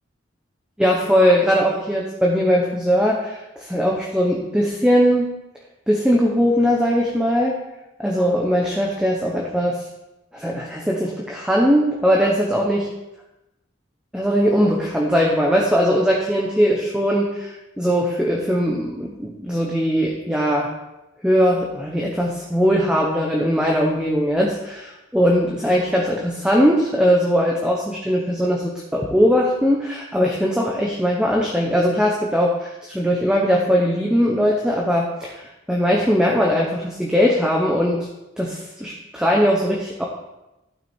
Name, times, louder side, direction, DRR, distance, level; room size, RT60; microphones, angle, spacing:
voice 1, 0.8-5.3 5.9-7.6 8.0-9.8 10.3-12.9 14.1-20.7 21.2-35.4 35.7-38.1 38.4-40.1, equal, 5° right, -2 dB, 0.9 m, -20 dB
12.0 x 6.0 x 4.5 m, 0.96 s
head